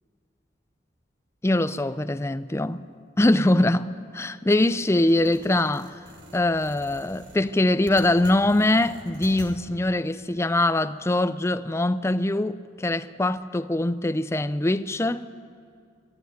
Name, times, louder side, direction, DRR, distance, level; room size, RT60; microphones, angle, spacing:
voice 1, 1.4-2.8 3.2-3.9 4.1-5.9 6.3-15.3, left 1 dB, 15° left, 0.5 m, -23 dB
sound 1, 4.5-9.5, right 1 dB, 85° right, 3.6 m, -46 dB
24.0 x 12.0 x 9.4 m
head